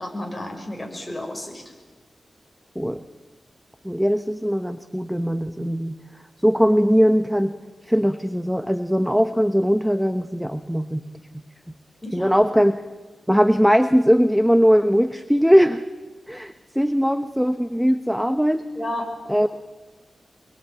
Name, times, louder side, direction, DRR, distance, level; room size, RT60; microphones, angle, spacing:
voice 1, 0.0-1.6 12.0-12.3 18.7-19.1, left 1 dB, 15° left, 2 dB, 6.3 m, -32 dB
voice 2, 3.8-5.9 6.4-7.6 7.9-11.0 12.1-12.8 13.3-15.8 16.3-18.6 19.3-19.5, equal, ahead, 10 dB, 0.9 m, -20 dB
24.5 x 22.0 x 9.0 m, 1.3 s
wide cardioid pair, 95°, 0 cm